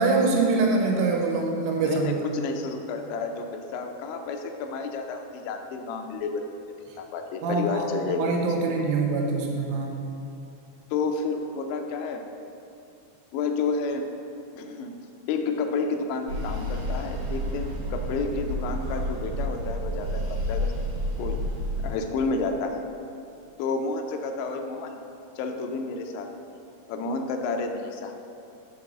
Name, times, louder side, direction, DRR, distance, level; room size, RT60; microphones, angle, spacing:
voice 1, 0.0-2.2 7.4-10.1, right 3 dB, 85° right, 1 dB, 2.9 m, -24 dB
voice 2, 1.8-6.5 7.0-8.7 10.9-12.2 13.3-14.0 14.6-14.9 15.3-20.7 21.2-21.4 21.8-22.8 23.6-25.0 25.4-26.3 26.9-28.2, left 4 dB, 80° left, 4 dB, 2.8 m, -30 dB
sound 1, 16.3-21.9, equal, 55° right, 2.5 m, -30 dB
6.0 x 5.3 x 6.4 m, 2.6 s
omnidirectional pair, 5.3 m